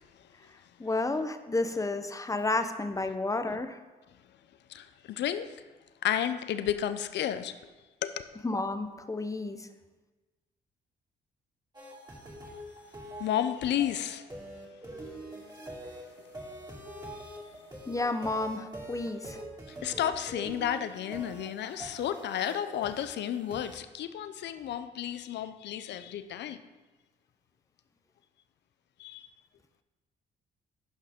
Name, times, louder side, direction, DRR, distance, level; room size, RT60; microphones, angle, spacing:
voice 1, 0.8-3.8 8.4-9.7 17.9-19.4, left 2 dB, 15° left, 9 dB, 0.7 m, -31 dB
voice 2, 4.7-5.5 6.0-7.5 8.0-8.3 13.2-14.2 19.8-26.6 29.0-29.3, left 10 dB, 70° left, 11 dB, 0.5 m, -32 dB
sound 1, 11.7-23.7, right 1 dB, 20° right, 2.4 m, -44 dB
11.0 x 5.6 x 3.6 m, 1.2 s
supercardioid pair, 65°, 19 cm